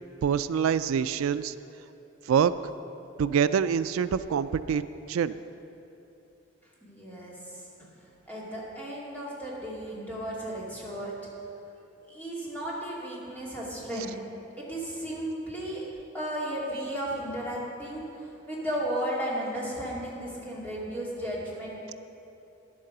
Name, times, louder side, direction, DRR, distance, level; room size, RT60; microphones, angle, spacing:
voice 1, 0.2-1.5 2.3-2.6 3.2-5.4, right 7 dB, 85° right, 14 dB, 0.3 m, -25 dB
voice 2, 6.8-7.9 8.3-11.1 12.1-14.1 14.6-15.8 16.1-21.9, right 1 dB, 10° left, -6 dB, 2.4 m, -34 dB
11.0 x 8.6 x 6.6 m, 2.9 s
head